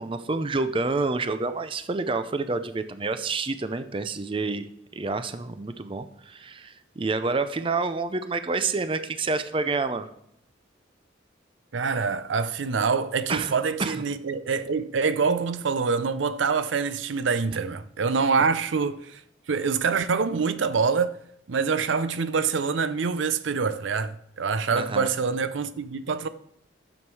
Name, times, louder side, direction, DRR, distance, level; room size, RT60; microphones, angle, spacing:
voice 1, 0.0-4.7 4.9-10.1 13.3-13.5 13.8-14.0 24.7-25.1, right 3 dB, 30° right, 0.5 m, -28 dB
voice 2, 11.7-19.2 19.5-21.2 21.5-26.3, right 5 dB, 85° right, 0.5 m, -25 dB
12.5 x 7.2 x 4.7 m
head